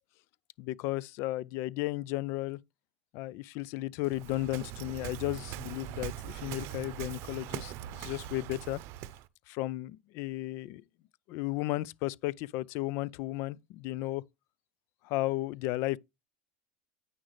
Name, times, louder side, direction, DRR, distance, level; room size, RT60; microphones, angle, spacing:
voice 1, 0.6-2.6 3.1-8.8 9.5-10.8 11.3-14.2 15.0-16.0, left 17 dB, 60° left, 0.4 m, -34 dB
Waves surf, 4.0-9.3, right 13 dB, 60° right, 0.6 m, -41 dB
9.1 x 6.1 x 3.2 m
supercardioid pair, 110°, 5 cm